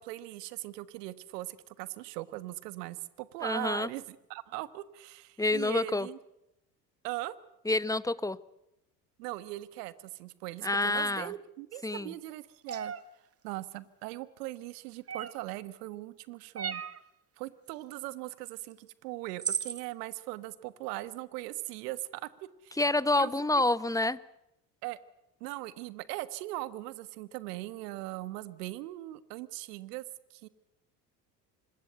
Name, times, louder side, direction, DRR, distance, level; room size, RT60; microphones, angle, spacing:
voice 1, 0.0-6.2 7.0-7.3 9.2-12.9 13.4-16.8 17.4-22.3 22.6-22.8 23.2-23.3 24.8-25.0 25.4-30.0 30.3-30.5, right 17 dB, 70° right, 16 dB, 1.5 m, -40 dB
voice 2, 3.4-3.9 5.4-6.1 7.6-8.4 10.6-11.3 11.8-12.1 22.8-24.2, left 2 dB, 5° left, 17 dB, 1.0 m, -28 dB
sound 1, 12.7-13.0 15.1-15.5 16.6-17.0 18.7-18.8 19.4-19.8, right 8 dB, 30° right, 1.5 m, -34 dB
26.0 x 21.5 x 8.1 m, 0.85 s
hypercardioid pair, 70°, 50 cm